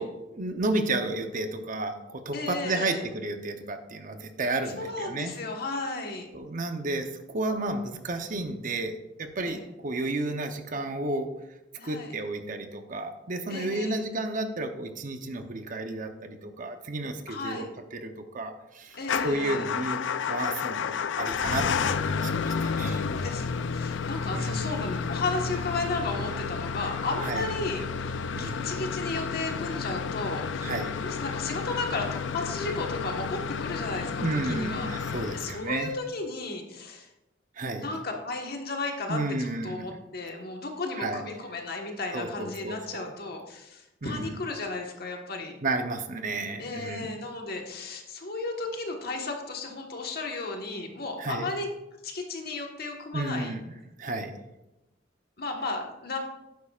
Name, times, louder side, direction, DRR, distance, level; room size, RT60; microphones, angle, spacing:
voice 1, 0.0-5.3 6.3-11.3 11.8-19.0 19.2-20.0 20.3-23.0 24.3-24.7 27.2-27.4 28.3-28.7 30.6-30.9 34.2-35.9 37.6-37.9 39.1-39.9 41.0-41.2 42.1-43.1 44.0-44.3 45.6-47.1 51.2-51.5 53.1-53.6 54.0-54.4, right 2 dB, 45° right, 7 dB, 0.8 m, -32 dB
voice 2, 2.3-3.0 4.8-6.3 9.4-9.6 11.8-12.1 13.5-14.0 17.3-17.7 19.0-19.7 22.9-34.9 35.3-37.1 37.8-45.6 46.6-51.7 52.0-53.5 55.4-56.2, left 3 dB, 55° left, 2 dB, 1.4 m, -34 dB
Motor vehicle (road) / Engine starting / Idling, 19.0-36.0, left 6 dB, 75° left, 0.4 m, -31 dB
11.5 x 9.4 x 2.4 m, 0.97 s
head